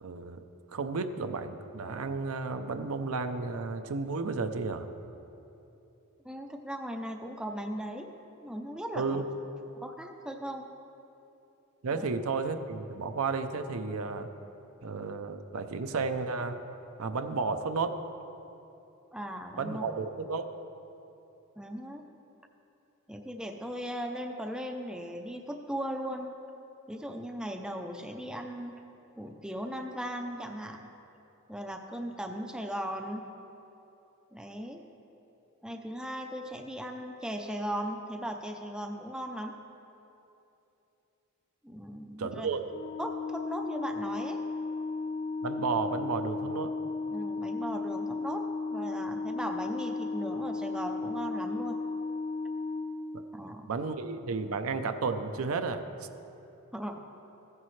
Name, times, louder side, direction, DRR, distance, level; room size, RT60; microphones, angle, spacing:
voice 1, 0.0-0.4 0.7-4.9 9.0-9.2 11.8-14.3 14.8-16.6 17.0-18.0 19.6-20.5 42.2-42.6 45.4-46.7 53.1-53.2 53.7-55.8, right 4 dB, 75° right, 8 dB, 0.5 m, -32 dB
voice 2, 6.2-8.1 8.4-9.2 9.8-10.8 11.9-12.1 19.1-19.8 21.6-22.0 23.1-26.3 26.9-28.8 29.2-30.9 31.5-33.2 34.3-34.8 35.6-39.5 41.6-42.5 43.0-44.4 47.1-48.4 48.7-51.8 53.3-53.7 56.7-57.0, equal, 5° right, 4 dB, 0.5 m, -38 dB
Organ, 42.6-53.5, left 3 dB, 80° left, 1.8 m, -35 dB
14.5 x 9.8 x 3.2 m, 2.9 s
head